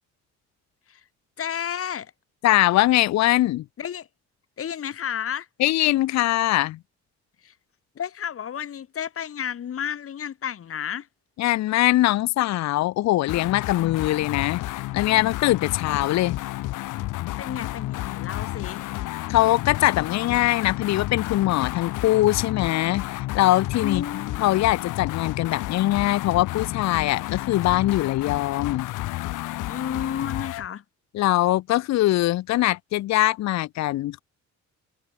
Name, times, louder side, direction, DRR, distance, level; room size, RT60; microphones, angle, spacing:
voice 1, 1.4-2.1 3.8-4.1 4.6-5.5 7.4-7.5 7.9-11.1 17.4-18.9 23.8-24.5 29.7-30.8, left 9 dB, 50° left, 1.3 m, -32 dB
voice 2, 2.4-3.6 5.6-6.8 11.4-16.4 19.3-24.0 24.4-28.9 31.1-34.2, left 16 dB, 65° left, 0.5 m, -22 dB
sound 1, 13.3-30.7, left 17 dB, 90° left, 1.3 m, -31 dB
cardioid pair, 90°, 30 cm